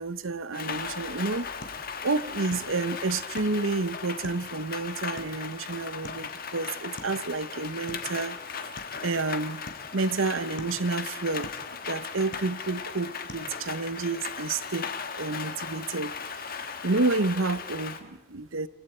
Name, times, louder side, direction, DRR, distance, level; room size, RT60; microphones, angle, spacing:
voice 1, 0.0-1.5 2.0-8.4 9.0-9.6 9.9-11.5 11.9-16.1 16.8-18.7, right 3 dB, 80° right, 15 dB, 1.0 m, -30 dB
Rain, 0.5-18.0, left 6 dB, 45° left, 1.5 m, -37 dB
sound 1, 0.7-14.1, left 1 dB, 60° left, 2.7 m, -50 dB
29.5 x 24.5 x 4.5 m, 0.94 s
head